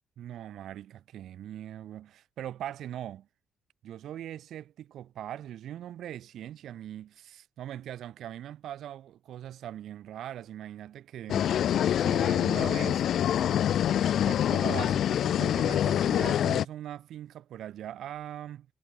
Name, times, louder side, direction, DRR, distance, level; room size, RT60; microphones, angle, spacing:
voice 1, 0.2-3.3 3.8-11.5 12.0-13.1 14.0-18.7, right 11 dB, 75° right, 7.2 m, -41 dB
sound 1, 11.3-16.6, left 10 dB, 70° left, 0.7 m, -25 dB
cardioid pair, 90°, 0 cm